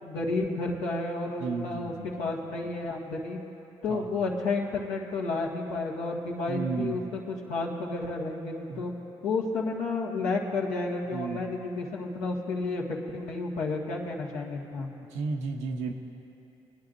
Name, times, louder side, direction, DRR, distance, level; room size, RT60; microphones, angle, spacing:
voice 1, 0.0-3.4 3.8-8.9 9.2-14.9, left 3 dB, 85° left, -3 dB, 1.7 m, -31 dB
voice 2, 1.4-2.3 3.9-4.1 6.5-7.0 8.7-8.8 11.1-11.4 15.1-15.9, right 4 dB, 85° right, 3 dB, 0.8 m, -33 dB
24.5 x 10.5 x 2.7 m, 3.0 s
supercardioid pair, 60°, 11 cm